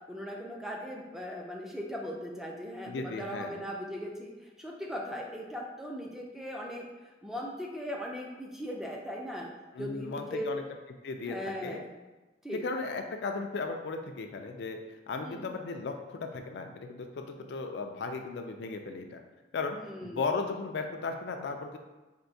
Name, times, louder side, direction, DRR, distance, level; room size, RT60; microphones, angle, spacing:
voice 1, 0.1-6.9 7.2-9.5 9.8-10.5 11.3-11.9 12.4-12.6 15.2-15.4 19.8-20.2, equal, ahead, -1 dB, 0.4 m, -39 dB
voice 2, 2.9-3.7 9.7-10.6 11.0-11.4 11.6-11.8 12.5-14.8 15.1-19.2 19.5-21.8, left 4 dB, 65° left, 5 dB, 0.3 m, -36 dB
4.4 x 2.7 x 2.6 m, 1.1 s
head